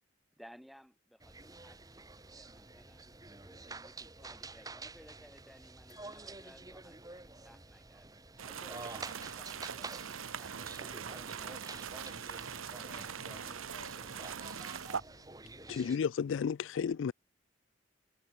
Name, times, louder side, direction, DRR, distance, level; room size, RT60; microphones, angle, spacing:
voice 1, 0.4-2.0 2.3-8.1 8.4-11.8, equal, ahead, 2.1 m, -59 dB
sound 1, 1.2-16.0, right 3 dB, 20° right, 1.5 m, -49 dB
voice 2, 5.9-6.9 12.8-14.0, left 3 dB, 40° left, 1.7 m, -59 dB
sound 2, 8.4-15.0, right 7 dB, 90° right, 1.0 m, -42 dB
voice 3, 15.7-17.1, left 6 dB, 70° left, 0.3 m, -32 dB
head